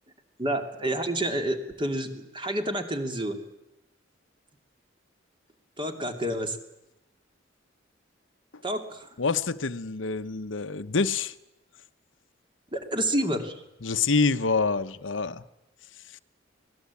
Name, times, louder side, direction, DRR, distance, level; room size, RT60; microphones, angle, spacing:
voice 1, 0.4-3.4 5.8-6.6 8.6-9.1 12.7-13.5, right 1 dB, 25° right, 2.7 m, -29 dB
voice 2, 9.2-11.3 13.8-15.4 16.1-16.2, left 4 dB, 85° left, 1.0 m, -26 dB
25.0 x 19.0 x 8.5 m
head